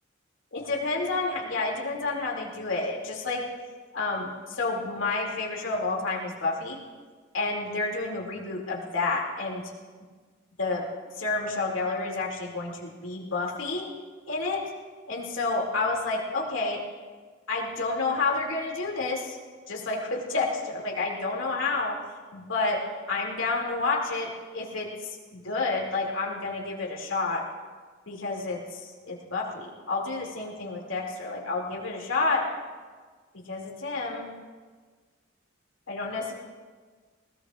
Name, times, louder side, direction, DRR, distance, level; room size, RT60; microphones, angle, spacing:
voice 1, 0.5-3.4 3.9-6.8 7.3-9.6 10.6-10.8 11.2-13.9 14.3-14.6 15.1-16.8 17.5-19.4 19.7-21.9 22.3-22.8 23.1-24.3 24.5-27.4 28.1-32.4 33.5-34.3 35.9-36.3, left 3 dB, 80° left, -2 dB, 2.6 m, -29 dB
20.5 x 19.0 x 2.5 m, 1.5 s
head